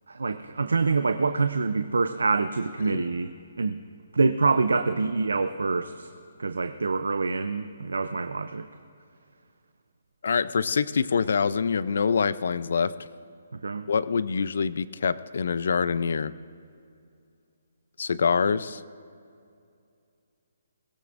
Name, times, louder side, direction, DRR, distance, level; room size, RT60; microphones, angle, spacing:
voice 1, 0.1-3.8 4.1-6.1 6.4-8.7 13.5-13.9, right 4 dB, 90° right, 10 dB, 0.5 m, -26 dB
voice 2, 10.2-12.9 13.9-16.3 18.0-18.8, left 5 dB, 70° left, 17 dB, 0.5 m, -25 dB
21.5 x 17.0 x 2.6 m, 2.4 s
hypercardioid pair, 150°, 0 cm